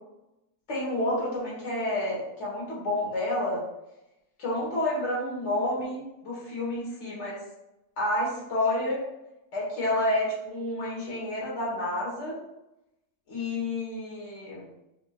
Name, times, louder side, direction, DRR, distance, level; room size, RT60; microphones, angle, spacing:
voice 1, 0.7-3.6 4.4-7.4 8.0-9.0 9.5-12.4 13.3-14.7, left 1 dB, 50° left, -6 dB, 1.6 m, -29 dB
4.3 x 3.0 x 2.4 m, 0.91 s
omnidirectional pair, 1.6 m